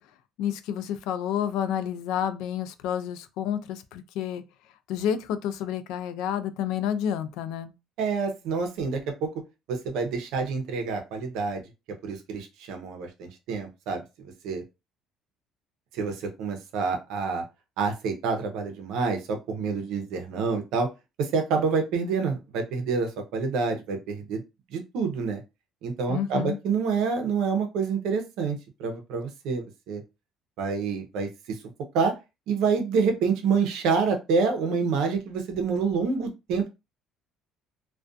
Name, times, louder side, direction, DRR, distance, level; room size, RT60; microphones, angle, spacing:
voice 1, 0.4-4.4 4.9-7.7 26.1-26.6, left 9 dB, 80° left, 0.3 m, -29 dB
voice 2, 8.0-9.3 9.7-11.6 12.0-14.0 14.4-14.6 15.9-17.4 17.8-20.9 21.2-24.4 24.7-25.4 25.8-30.0 30.6-31.3 31.9-32.1 32.5-36.7, right 5 dB, 70° right, 0.6 m, -27 dB
2.4 x 2.2 x 2.4 m
cardioid pair, 165°, 0 cm